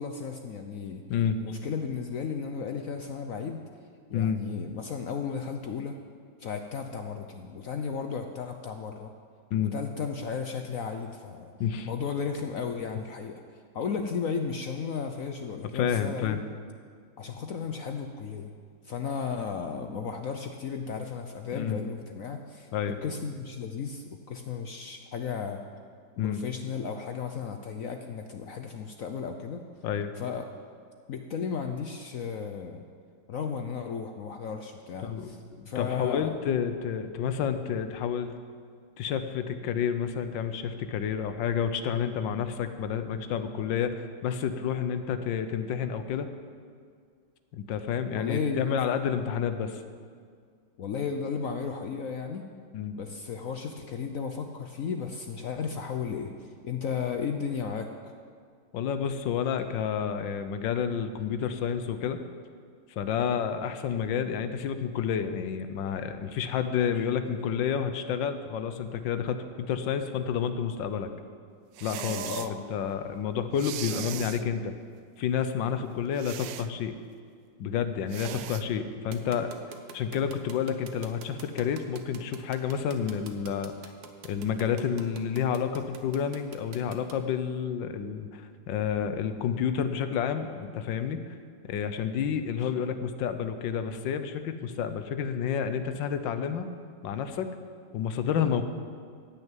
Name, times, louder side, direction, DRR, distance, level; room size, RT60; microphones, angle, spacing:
voice 1, 0.0-1.0 1.4-3.6 4.1-6.0 6.4-9.1 9.6-11.5 11.8-16.4 17.2-18.5 18.8-22.7 23.0-25.6 26.2-29.7 30.2-30.4 31.1-32.8 33.3-35.4 35.7-36.3 48.1-48.6 50.8-52.5 52.9-57.9 72.2-72.6, left 6 dB, 60° left, 5 dB, 0.9 m, -34 dB
voice 2, 15.7-16.4 21.5-21.8 22.7-23.0 26.2-26.4 29.8-30.1 35.0-38.3 39.0-46.3 47.5-49.8 52.7-52.9 58.7-62.2 63.0-71.1 71.8-74.7 75.2-77.0 77.6-79.5 79.9-83.7 84.2-91.4 91.6-96.7 97.0-97.5 97.9-98.6, left 7 dB, 85° left, 9 dB, 1.5 m, -30 dB
sound 1, 71.7-72.5 73.6-74.4 76.2-76.7 78.1-78.6, right 12 dB, 80° right, 1.2 m, -38 dB
sound 2, 79.1-87.1, right 6 dB, 60° right, 1.4 m, -46 dB
14.5 x 6.6 x 9.0 m, 2.1 s
omnidirectional pair, 2.0 m